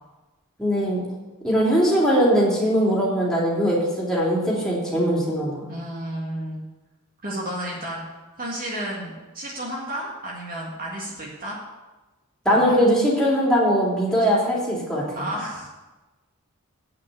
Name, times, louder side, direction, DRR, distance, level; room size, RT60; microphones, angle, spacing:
voice 1, 0.6-1.0 1.4-5.6 12.4-15.0, equal, 5° left, -5 dB, 2.9 m, -20 dB
voice 2, 5.6-6.6 7.2-8.0 8.4-11.6 12.5-12.8 15.2-15.7, right 1 dB, 40° right, -4 dB, 1.9 m, -32 dB
8.5 x 6.7 x 8.3 m, 1.1 s
head